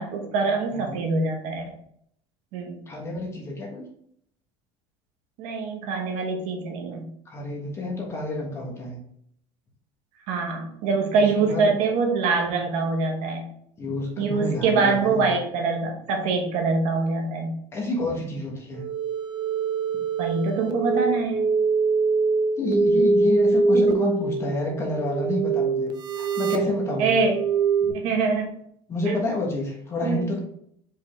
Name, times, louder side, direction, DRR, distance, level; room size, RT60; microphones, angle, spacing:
voice 1, 0.0-1.8 2.5-2.8 5.4-7.1 10.3-13.5 14.2-17.6 20.2-21.5 23.7-23.8 27.0-27.4 27.8-28.6 29.1-29.2 30.0-30.2, right 4 dB, 65° right, 3 dB, 1.0 m, -24 dB
voice 2, 0.7-1.0 2.9-3.9 7.3-9.0 11.5-11.7 13.8-15.4 17.7-18.9 22.6-27.2 27.8-27.9 28.9-30.4, left 2 dB, 20° left, -2 dB, 1.1 m, -29 dB
sound 1, 18.7-27.9, right 4 dB, 35° right, 0.5 m, -23 dB
4.8 x 3.5 x 3.1 m, 0.69 s
cardioid pair, 150°, 13 cm